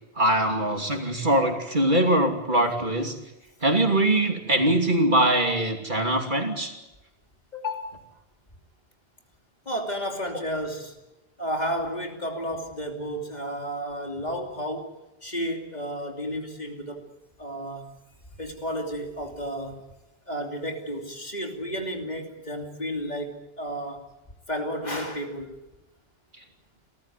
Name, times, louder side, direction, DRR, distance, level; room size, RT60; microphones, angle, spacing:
voice 1, 0.2-3.1 3.6-6.7, right 1 dB, 50° right, 3 dB, 3.0 m, -22 dB
voice 2, 7.5-7.9 9.6-10.9 11.4-14.9 15.2-17.0 17.4-18.0 18.4-19.8 20.3-24.0 24.5-25.5, equal, 40° left, 2 dB, 3.0 m, -32 dB
29.5 x 14.0 x 9.3 m, 0.99 s
omnidirectional pair, 1.1 m